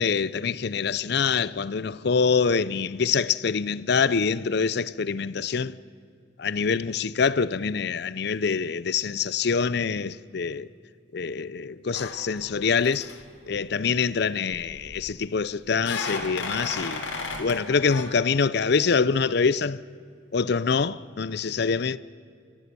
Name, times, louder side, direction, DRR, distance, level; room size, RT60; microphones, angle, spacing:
voice 1, 0.0-5.8 6.4-10.7 11.1-13.1 13.5-17.1 17.4-19.8 20.3-22.0, left 5 dB, 55° left, 0.5 m, -25 dB
sound 1, 11.9-12.5 12.8-13.1 14.5-15.1 15.8-17.6 17.9-18.0, left 3 dB, 85° left, 3.4 m, -34 dB
29.5 x 14.5 x 6.9 m
head